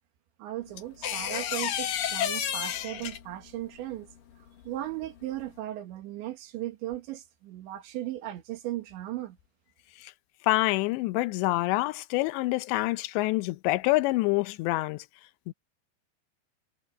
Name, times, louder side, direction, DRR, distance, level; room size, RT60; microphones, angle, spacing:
voice 1, 0.4-4.1 4.7-9.4, right 14 dB, 90° right, 4.1 m, -37 dB
sound 1, 0.8-3.5 5.2-5.4, left 10 dB, 60° left, 2.8 m, -31 dB
voice 2, 10.4-15.0 15.5-15.6, left 19 dB, 85° left, 2.9 m, -26 dB
omnidirectional pair, 5.1 m